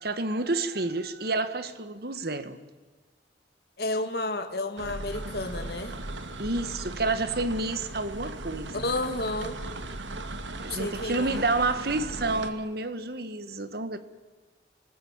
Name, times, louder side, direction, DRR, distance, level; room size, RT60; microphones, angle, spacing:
voice 1, 0.0-2.6 6.4-8.8 10.6-14.0, right 2 dB, 55° right, 1.6 m, -29 dB
voice 2, 3.8-6.0 8.7-9.6 10.7-11.5, left 2 dB, 60° left, 2.0 m, -31 dB
sound 1, 4.8-12.5, right 2 dB, 90° right, 2.0 m, -38 dB
27.5 x 19.5 x 7.5 m
head